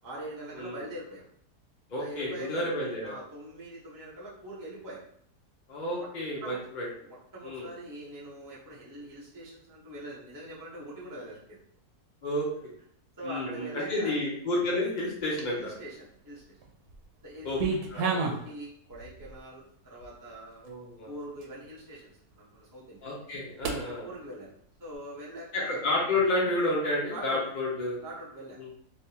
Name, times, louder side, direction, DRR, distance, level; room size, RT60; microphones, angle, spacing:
voice 1, 0.0-1.2 2.0-2.6 3.0-5.0 6.0-6.1 6.4-6.6 7.0-11.6 12.6-12.7 13.2-14.2 15.5-16.6 17.2-20.7 21.1-23.1 23.9-24.5 24.8-25.8 27.1-27.5 28.0-28.6, right 1 dB, 15° right, -8 dB, 0.9 m, -43 dB
voice 2, 1.9-3.1 5.7-6.9 7.4-7.6 12.2-12.5 13.2-15.7 17.4-17.6 17.9-18.1 20.6-21.1 23.0-24.1 25.5-28.0 28.6-28.7, left 2 dB, 40° left, -4 dB, 0.7 m, -30 dB
sound 1, 15.1-15.8 16.4-17.0 17.2-18.5 18.9-19.4 20.0-20.1 20.7-20.8 21.4-21.5 23.6-23.8, right 4 dB, 80° right, 1.2 m, -31 dB
3.4 x 2.9 x 2.9 m, 0.66 s
omnidirectional pair, 1.7 m